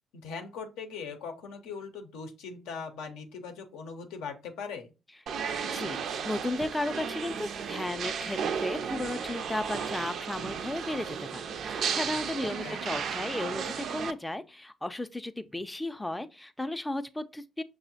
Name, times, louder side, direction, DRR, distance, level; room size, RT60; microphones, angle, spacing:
voice 1, 0.2-4.9 12.6-12.8, left 5 dB, 85° left, 0.5 m, -40 dB
sound 1, 5.3-14.1, right 6 dB, 65° right, 0.3 m, -34 dB
voice 2, 5.7-17.6, left 1 dB, 10° left, 0.3 m, -35 dB
5.9 x 2.0 x 2.7 m
supercardioid pair, 60°, 0 cm